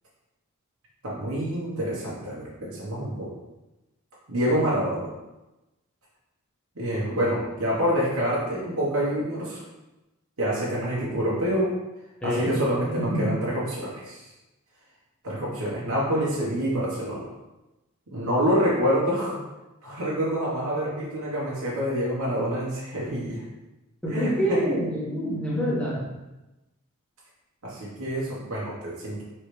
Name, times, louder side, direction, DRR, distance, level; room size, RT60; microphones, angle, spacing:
voice 1, 1.0-3.3 4.3-5.1 6.8-9.6 10.4-11.7 12.2-14.2 15.2-17.2 18.1-19.4 19.8-23.4 24.1-24.6 27.6-29.2, equal, 80° right, -7 dB, 1.1 m, -27 dB
voice 2, 12.2-12.5 13.1-13.3 24.0-26.0, equal, 5° left, -8 dB, 1.2 m, -26 dB
4.7 x 3.2 x 3.2 m, 1.0 s
head